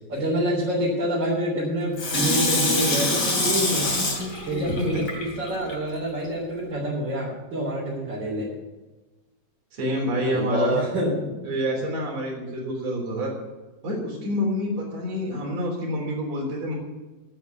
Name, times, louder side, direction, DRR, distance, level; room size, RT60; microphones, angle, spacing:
voice 1, 0.1-3.9 4.5-8.5 10.2-11.3, equal, 35° right, -6 dB, 4.1 m, -27 dB
Water tap faucet / Sink (filling or washing), 2.0-5.7 6.2-6.3, left 2 dB, 35° left, 3.3 m, -25 dB
voice 2, 9.7-10.9 11.4-13.3 13.8-16.8, equal, 60° right, -1 dB, 4.8 m, -27 dB
9.9 x 9.3 x 8.1 m, 1.2 s
omnidirectional pair, 3.5 m